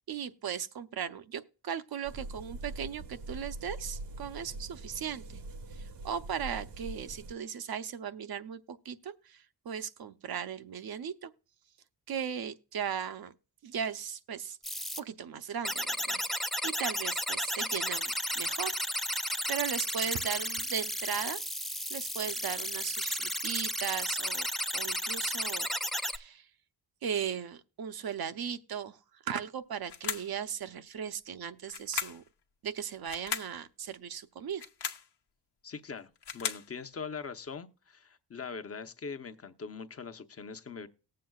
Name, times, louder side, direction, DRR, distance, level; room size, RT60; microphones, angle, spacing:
voice 1, 0.1-5.4 5.7-11.3 12.1-13.3 13.6-14.6 15.0-16.2 16.6-18.8 19.1-21.4 21.9-24.5 24.7-25.7 26.0-26.5 27.0-32.2 32.6-34.7, right 8 dB, 65° right, 0.7 m, -37 dB
sound 1, 2.0-7.3, right 2 dB, 85° right, 1.3 m, -43 dB
sound 2, 14.6-15.0 15.6-26.2, equal, ahead, 0.4 m, -33 dB
sound 3, 29.9-30.4 31.7-32.3 33.0-33.6 34.5-35.1 36.0-36.7, left 7 dB, 75° left, 1.1 m, -36 dB
voice 2, 35.6-40.9, left 5 dB, 35° left, 0.8 m, -42 dB
19.0 x 7.7 x 2.3 m
wide cardioid pair, 135°, 41 cm